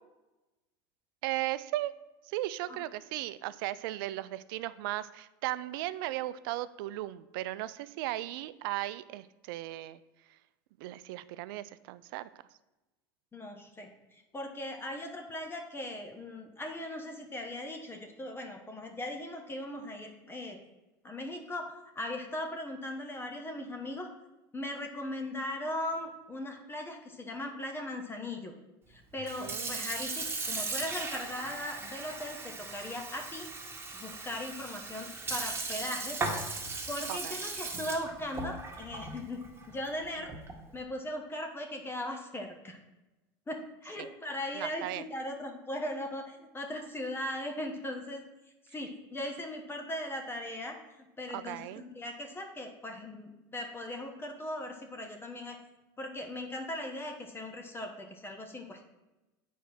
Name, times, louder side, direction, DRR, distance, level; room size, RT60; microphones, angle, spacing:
voice 1, 1.2-1.9 2.2-10.0 10.8-12.3 29.4-29.9 37.1-37.4 44.0-44.1 44.5-45.0 51.3-51.8, right 16 dB, 75° right, 16 dB, 0.4 m, -36 dB
voice 2, 13.3-20.6 21.0-24.1 24.5-28.5 28.9-33.5 33.9-36.2 36.9-40.3 40.7-42.8 43.5-48.2 48.7-50.8 51.2-55.6 56.0-58.9, left 1 dB, 20° left, 3 dB, 1.2 m, -39 dB
Sink (filling or washing) / Fill (with liquid), 29.1-40.7, right 3 dB, 20° right, 1.9 m, -38 dB
8.3 x 4.5 x 6.3 m, 1.0 s
supercardioid pair, 95°, 12 cm